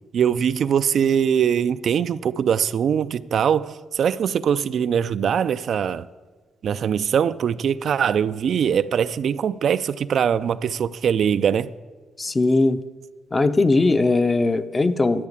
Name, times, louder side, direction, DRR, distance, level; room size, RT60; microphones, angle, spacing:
voice 1, 0.1-6.1 6.6-11.7, right 8 dB, 60° right, 0.4 m, -22 dB
voice 2, 12.2-12.8 13.3-15.3, left 3 dB, 25° left, 0.7 m, -19 dB
12.0 x 6.6 x 8.7 m
cardioid pair, 90°, 0 cm